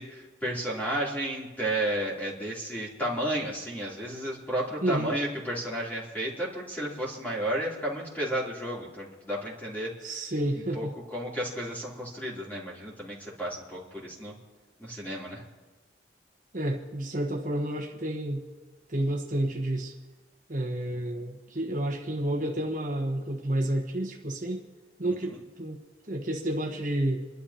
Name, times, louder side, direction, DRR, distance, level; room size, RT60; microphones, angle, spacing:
voice 1, 0.0-10.2 10.5-10.8 11.1-14.3 14.8-15.4 20.9-21.0 25.0-25.4, right 1 dB, 10° left, -6 dB, 3.2 m, -33 dB
voice 2, 4.8-5.2 10.0-10.9 16.5-18.4 18.9-19.9 20.5-24.6 25.0-25.8 26.1-27.2, right 1 dB, 45° right, 0 dB, 1.3 m, -30 dB
29.0 x 12.0 x 2.9 m, 1.3 s
head